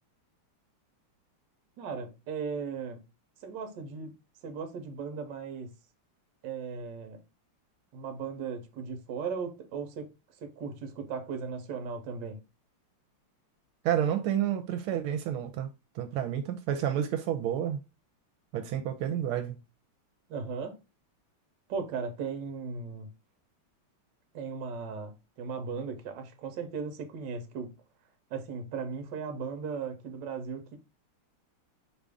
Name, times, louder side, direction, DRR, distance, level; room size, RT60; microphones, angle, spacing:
voice 1, 1.8-3.0 3.4-4.1 4.4-5.7 6.4-7.2 7.9-10.1 10.4-12.4 20.3-20.8 21.7-23.1 24.3-27.8 28.3-30.8, right 5 dB, 65° right, 1.4 m, -37 dB
voice 2, 13.8-15.7 16.0-17.8 18.5-19.6, right 10 dB, 85° right, 1.5 m, -30 dB
5.1 x 2.6 x 3.4 m
omnidirectional pair, 2.3 m